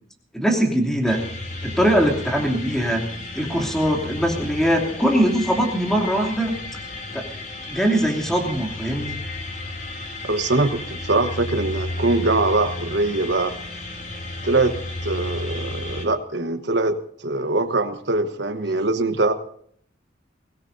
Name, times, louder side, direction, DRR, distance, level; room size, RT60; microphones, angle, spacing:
voice 1, 0.3-1.2 1.6-3.1 3.3-6.6 7.1-7.2 7.7-9.2, equal, 5° left, 1 dB, 2.8 m, -21 dB
sound 1, 1.1-16.1, left 2 dB, 40° left, 3.0 m, -33 dB
voice 2, 10.2-13.5 14.4-14.8 15.0-17.0 17.2-19.3, right 2 dB, 60° right, 7 dB, 1.2 m, -22 dB
23.0 x 16.5 x 2.7 m, 0.62 s
head